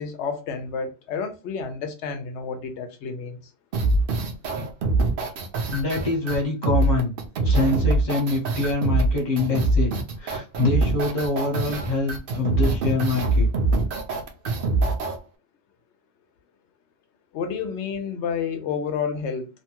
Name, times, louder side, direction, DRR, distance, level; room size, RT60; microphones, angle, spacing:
voice 1, 0.0-3.4 17.3-19.5, left 6 dB, 75° left, 0.9 m, -30 dB
sound 1, 3.7-15.2, right 2 dB, 55° right, 0.7 m, -23 dB
voice 2, 5.7-7.1 7.4-9.9 10.2-13.5, left 3 dB, 40° left, 1.1 m, -25 dB
2.8 x 2.2 x 2.8 m
omnidirectional pair, 1.2 m